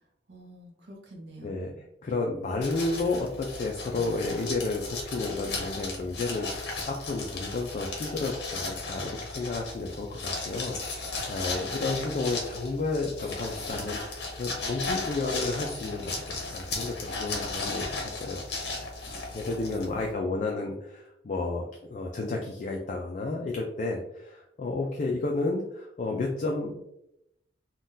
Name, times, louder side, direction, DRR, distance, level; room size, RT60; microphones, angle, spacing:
voice 1, 0.3-1.8 3.8-4.1 19.7-20.2, right 1 dB, 65° right, 1 dB, 0.6 m, -47 dB
voice 2, 2.0-18.4 19.3-21.6 21.9-26.8, left 3 dB, 40° left, 1 dB, 0.3 m, -32 dB
sound 1, 2.6-20.1, left 3 dB, 60° left, 0.8 m, -35 dB
3.7 x 2.2 x 2.6 m, 0.82 s
head